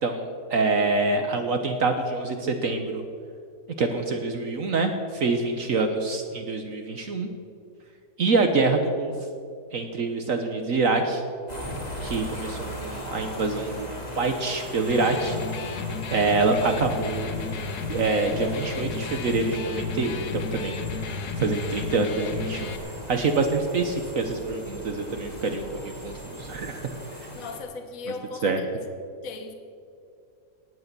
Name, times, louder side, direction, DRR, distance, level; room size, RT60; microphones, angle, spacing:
voice 1, 0.5-3.0 3.8-7.3 8.2-9.1 9.7-11.2 12.0-13.9 14.2-15.4 16.1-17.3 17.9-20.8 21.4-22.7 23.1-26.8 28.4-28.6, right 3 dB, 55° right, 6 dB, 1.3 m, -25 dB
sound 1, 11.5-27.6, equal, 25° left, 2.3 m, -39 dB
Electric guitar, 14.8-22.8, left 5 dB, 75° left, 1.5 m, -33 dB
sound 2, 16.5-26.8, right 3 dB, 85° right, 2.1 m, -45 dB
voice 2, 27.4-28.8 29.2-29.5, left 4 dB, 60° left, 6 dB, 1.5 m, -37 dB
18.5 x 8.6 x 6.8 m, 2.4 s
omnidirectional pair, 1.7 m